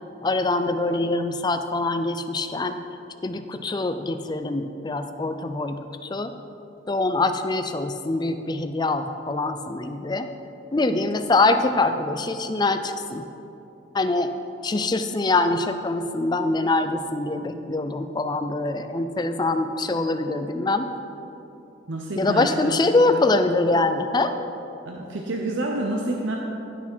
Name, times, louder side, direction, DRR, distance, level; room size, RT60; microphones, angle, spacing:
voice 1, 0.2-2.8 3.2-6.3 6.9-10.3 10.7-13.2 13.9-14.3 14.6-20.9 22.2-24.3, left 2 dB, 20° left, 8 dB, 0.4 m, -24 dB
voice 2, 21.9-22.8 23.1-23.3 24.9-26.4, right 2 dB, 75° right, 0 dB, 0.8 m, -28 dB
16.0 x 6.2 x 4.5 m, 2.9 s
head